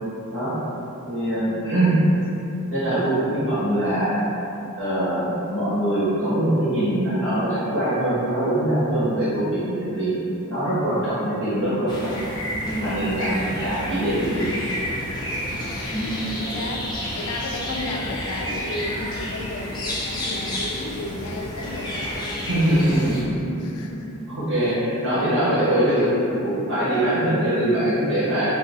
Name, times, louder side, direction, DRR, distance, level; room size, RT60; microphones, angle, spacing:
voice 1, 1.0-2.0 2.7-4.2 4.8-10.2 10.5-12.2 12.6-14.5 15.9-16.1 22.5-23.3 24.3-28.6, right 1 dB, 60° right, -13 dB, 1.4 m, -23 dB
sound 1, 11.9-23.2, left 1 dB, 20° left, 0.5 m, -30 dB
voice 2, 15.2-23.0 23.6-24.2 24.5-24.8, left 2 dB, 85° left, 1 dB, 0.4 m, -34 dB
3.9 x 2.3 x 2.6 m, 2.9 s
head